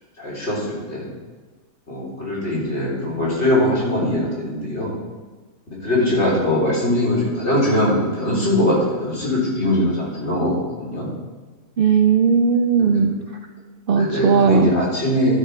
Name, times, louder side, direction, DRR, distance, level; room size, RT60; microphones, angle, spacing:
voice 1, 0.2-1.1 1.9-4.9 5.7-11.1 12.8-13.0 13.9-15.4, left 1 dB, 45° left, -6 dB, 4.0 m, -21 dB
voice 2, 11.8-13.1 13.9-14.7, right 6 dB, 85° right, 5 dB, 0.4 m, -17 dB
12.0 x 10.5 x 3.4 m, 1.3 s
omnidirectional pair, 1.6 m